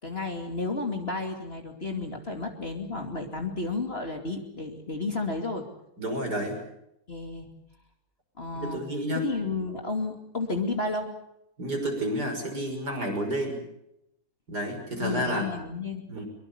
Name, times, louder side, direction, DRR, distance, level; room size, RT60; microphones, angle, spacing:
voice 1, 0.0-5.6 7.1-7.5 8.4-8.8 9.2-11.1 15.0-16.0, left 3 dB, 40° left, 3 dB, 2.8 m, -32 dB
voice 2, 6.0-6.6 8.5-9.2 11.6-13.6 14.5-15.5 16.1-16.2, equal, 90° right, 4 dB, 6.8 m, -30 dB
24.5 x 22.5 x 7.1 m, 0.80 s
omnidirectional pair, 1.7 m